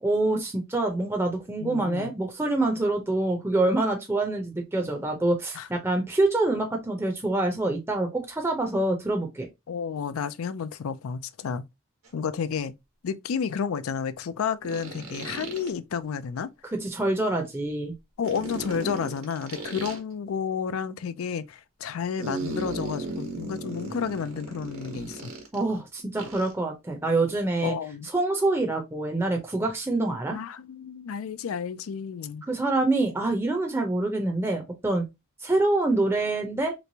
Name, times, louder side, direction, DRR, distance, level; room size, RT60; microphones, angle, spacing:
voice 1, 0.0-9.5 16.6-17.9 25.5-27.7 28.1-30.4 32.5-35.1 35.4-36.7, right 2 dB, 10° right, 0.6 m, -26 dB
voice 2, 1.6-2.1 5.6-5.7 9.7-11.6 12.1-12.7 13.0-16.5 18.2-25.3 27.6-28.1 30.3-32.4, left 6 dB, 90° left, 0.4 m, -31 dB
sound 1, 12.1-12.2 14.6-15.7 18.2-20.0 22.2-25.6 26.2-26.5, right 2 dB, 90° right, 1.2 m, -36 dB
3.3 x 3.1 x 2.7 m
head